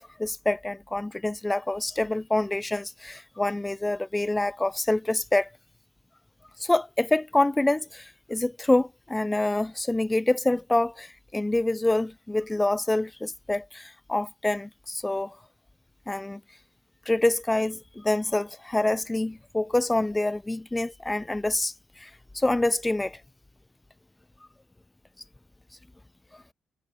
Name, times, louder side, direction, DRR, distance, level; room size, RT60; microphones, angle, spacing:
voice 1, 0.0-5.5 6.6-15.4 16.1-16.4 17.1-23.2, left 2 dB, 15° left, 0.4 m, -26 dB
cardioid pair, 90°, 0 cm